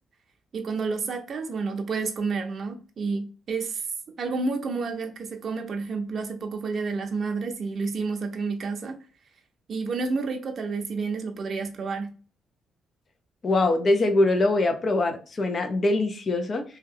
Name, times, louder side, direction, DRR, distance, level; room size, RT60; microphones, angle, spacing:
voice 1, 0.5-3.9 4.2-9.0 9.7-12.1, right 4 dB, 50° right, 0.6 m, -30 dB
voice 2, 13.4-16.6, left 2 dB, 40° left, 0.6 m, -23 dB
2.9 x 2.3 x 3.6 m
cardioid pair, 90°, 0 cm